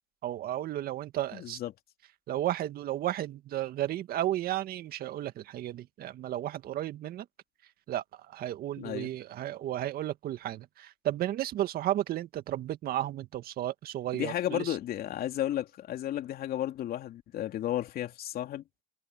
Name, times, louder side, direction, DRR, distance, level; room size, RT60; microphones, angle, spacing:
voice 1, 0.2-1.6 2.3-7.3 7.9-14.8, right 13 dB, 45° right, 2.0 m, -33 dB
voice 2, 1.3-1.7 8.8-9.1 14.1-18.6, left 12 dB, 45° left, 2.9 m, -33 dB
supercardioid pair, 105°, 21 cm